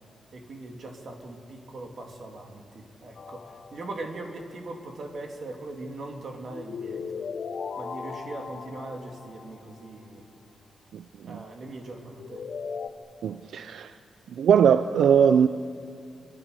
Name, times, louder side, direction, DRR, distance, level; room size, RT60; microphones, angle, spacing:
voice 1, 0.3-7.3 7.8-10.2 11.2-12.5, right 2 dB, 50° right, 2 dB, 3.2 m, -40 dB
sound 1, 3.1-4.2 6.5-9.8 12.2-12.9, left 5 dB, 50° left, 1.3 m, -37 dB
voice 2, 10.9-11.4 13.2-13.9 14.4-15.5, right 8 dB, 90° right, 11 dB, 0.6 m, -21 dB
27.5 x 24.0 x 6.9 m, 2.3 s
wide cardioid pair, 165°, 0 cm